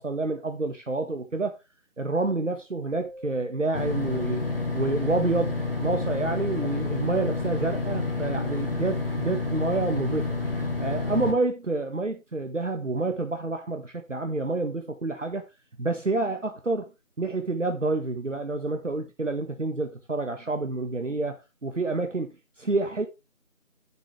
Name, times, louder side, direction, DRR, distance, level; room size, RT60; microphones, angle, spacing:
voice 1, 0.0-1.5 2.0-4.4 4.7-10.4 10.8-15.4 15.8-16.9 17.2-23.1, right 3 dB, 60° right, 1.4 m, -28 dB
sound 1, 2.9-5.2, right 1 dB, ahead, 2.8 m, -47 dB
sound 2, 3.7-11.3, left 3 dB, 40° left, 2.4 m, -29 dB
10.0 x 7.4 x 3.2 m
figure-of-eight pair, 175°, 41 cm